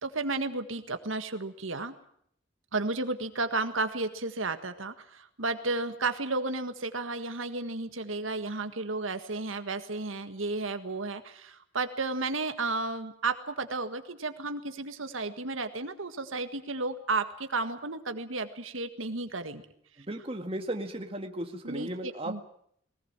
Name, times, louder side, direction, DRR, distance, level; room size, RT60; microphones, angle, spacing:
voice 1, 0.0-1.9 2.7-19.6 21.6-22.5, right 3 dB, 85° right, 8 dB, 1.8 m, -33 dB
voice 2, 20.0-22.4, right 1 dB, 30° right, 5 dB, 2.0 m, -35 dB
21.0 x 19.5 x 8.9 m, 0.67 s
head